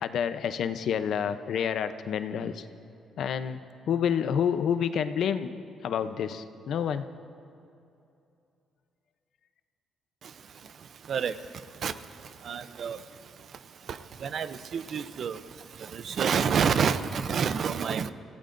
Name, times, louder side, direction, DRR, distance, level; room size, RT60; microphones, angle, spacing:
voice 1, 0.0-2.7 3.2-5.5 5.8-7.1, left 8 dB, 65° left, 0.7 m, -29 dB
voice 2, 12.5-13.0 14.2-14.5 14.7-15.4 16.1-18.1, right 7 dB, 50° right, 0.6 m, -27 dB
26.5 x 16.5 x 2.6 m
cardioid pair, 140°, 0 cm